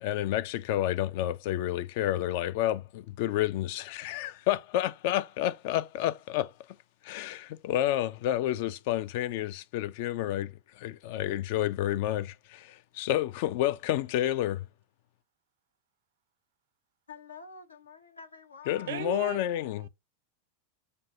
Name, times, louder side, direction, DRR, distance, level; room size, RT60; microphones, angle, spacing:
voice 1, 0.0-6.5 7.0-14.7 18.7-19.9, left 13 dB, 50° left, 0.4 m, -30 dB
voice 2, 17.1-19.3, left 5 dB, 75° left, 0.8 m, -48 dB
voice 3, 18.9-19.9, right 13 dB, 60° right, 0.4 m, -38 dB
6.7 x 2.6 x 2.7 m
figure-of-eight pair, 90°, 0 cm